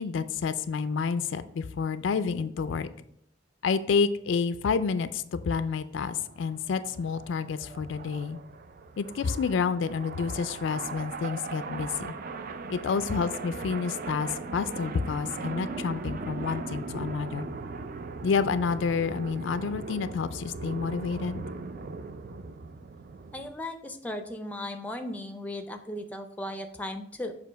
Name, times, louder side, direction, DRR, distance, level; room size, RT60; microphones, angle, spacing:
voice 1, 0.0-2.9 3.6-8.4 9.0-12.1 12.7-17.5 18.2-21.4, left 5 dB, 75° left, 12 dB, 0.4 m, -29 dB
sound 1, 6.0-23.5, right 4 dB, 50° right, 0.4 m, -39 dB
voice 2, 23.3-27.3, left 1 dB, 10° left, 6 dB, 0.4 m, -36 dB
6.7 x 2.9 x 5.1 m, 0.72 s
head